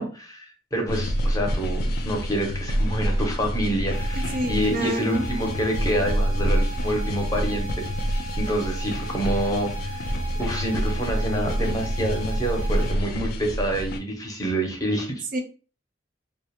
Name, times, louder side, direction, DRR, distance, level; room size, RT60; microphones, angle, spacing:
voice 1, 0.0-10.1 10.4-15.2, right 1 dB, 20° left, 1 dB, 0.6 m, -27 dB
sound 1, 0.9-14.0, equal, 55° left, 0.3 m, -27 dB
sound 2, 3.9-12.9, right 4 dB, 75° left, 0.8 m, -39 dB
voice 2, 4.1-5.3 15.3-15.4, right 1 dB, 50° right, 5 dB, 0.4 m, -29 dB
2.4 x 2.1 x 2.8 m, 0.37 s
head